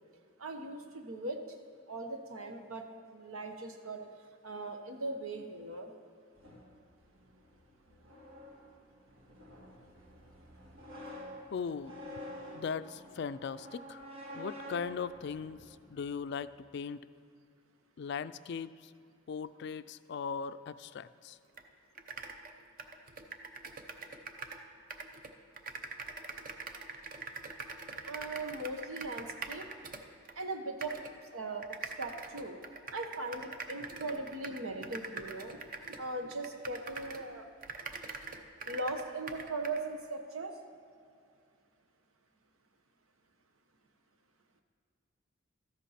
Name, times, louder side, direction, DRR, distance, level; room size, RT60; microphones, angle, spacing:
voice 1, 0.4-1.4 1.9-2.8 3.1-4.0 4.4-5.9 28.0-29.7 30.4-31.0 31.3-32.6 32.9-35.6 35.9-37.5 38.7-40.5, right 2 dB, 90° right, 5 dB, 1.2 m, -39 dB
sound 1, 6.3-16.3, equal, 70° right, 2.2 m, -49 dB
voice 2, 11.5-12.0 12.5-14.0 14.3-15.6 15.9-17.0 18.0-18.7 19.3-21.4, left 6 dB, 55° left, 14 dB, 0.3 m, -38 dB
sound 2, 21.6-21.7 21.9-24.6 24.9-30.4 30.8-31.1 31.6-37.3 37.6-39.8, right 4 dB, 40° right, 0.7 m, -44 dB
13.5 x 8.3 x 5.8 m, 2.4 s
head